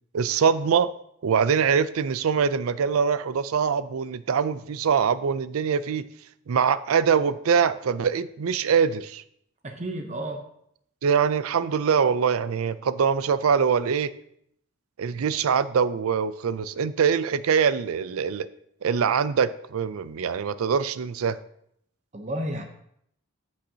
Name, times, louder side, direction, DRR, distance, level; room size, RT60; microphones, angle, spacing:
voice 1, 0.1-0.9 1.2-6.0 6.5-9.2 11.0-14.1 15.0-18.5 18.8-21.4, right 6 dB, 80° right, 14 dB, 0.4 m, -23 dB
voice 2, 9.6-10.5 22.1-22.6, right 1 dB, 35° right, 4 dB, 0.8 m, -32 dB
15.0 x 5.4 x 2.8 m, 0.72 s
head